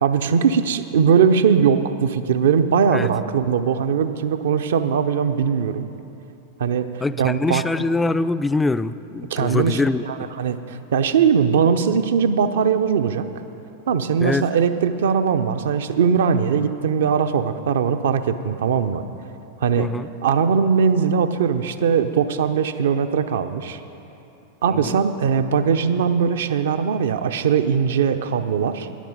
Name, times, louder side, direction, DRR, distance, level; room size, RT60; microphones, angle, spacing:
voice 1, 0.0-5.9 6.6-7.6 9.3-13.3 13.9-19.0 19.6-19.9 20.2-23.8 24.6-28.9, right 6 dB, 60° right, 9 dB, 0.6 m, -20 dB
voice 2, 7.0-10.3 14.2-14.5 19.8-20.1 24.8-24.9, left 3 dB, 10° left, 13 dB, 0.3 m, -23 dB
13.5 x 11.0 x 5.3 m, 2.9 s
figure-of-eight pair, 90°, 0 cm